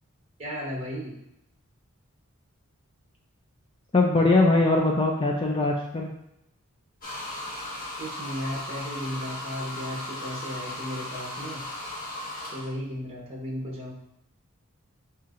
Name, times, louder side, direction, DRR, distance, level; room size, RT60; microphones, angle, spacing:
voice 1, 0.4-1.2 7.9-11.6 12.5-13.9, equal, 25° right, -4 dB, 1.1 m, -35 dB
voice 2, 3.9-6.1, left 2 dB, 25° left, -1 dB, 0.4 m, -21 dB
sound 1, 7.0-12.7, left 1 dB, 40° left, 1.4 m, -36 dB
7.0 x 2.8 x 2.5 m, 0.80 s
head